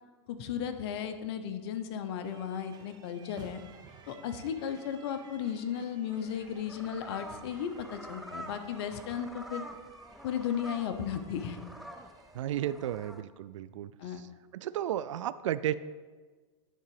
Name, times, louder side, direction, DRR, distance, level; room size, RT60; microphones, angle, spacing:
voice 1, 0.3-3.6 4.1-9.7 10.2-11.6 14.0-14.2, left 8 dB, 55° left, 8 dB, 0.9 m, -35 dB
sound 1, 2.2-12.4, right 5 dB, 25° right, 0.8 m, -56 dB
sound 2, 6.4-13.2, equal, ahead, 0.4 m, -47 dB
voice 2, 12.3-13.9 14.2-14.3 14.5-15.7, right 11 dB, 80° right, 15 dB, 0.4 m, -33 dB
10.5 x 3.8 x 4.8 m, 1.4 s
hypercardioid pair, 130°, 16 cm